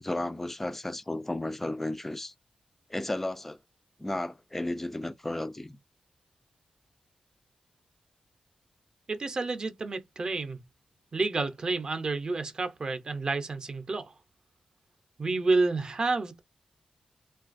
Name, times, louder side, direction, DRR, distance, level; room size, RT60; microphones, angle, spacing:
voice 1, 0.0-2.3 2.9-3.6 4.0-5.8, left 1 dB, 10° left, 0.3 m, -33 dB
voice 2, 9.1-10.6 11.1-14.1 15.2-16.4, right 3 dB, 35° right, 0.5 m, -29 dB
3.2 x 2.3 x 2.4 m
wide cardioid pair, 155°, 2 cm